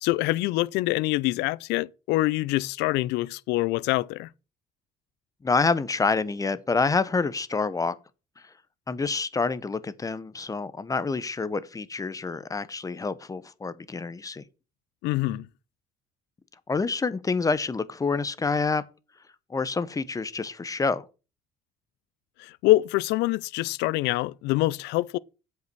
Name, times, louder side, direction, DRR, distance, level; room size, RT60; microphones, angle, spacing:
voice 1, 0.0-4.3 15.0-15.5 22.4-25.2, left 19 dB, 90° left, 0.4 m, -25 dB
voice 2, 5.4-8.0 8.9-14.4 16.7-18.8 19.5-21.0, left 4 dB, 20° left, 0.7 m, -27 dB
8.1 x 5.3 x 6.1 m
cardioid pair, 110°, 17 cm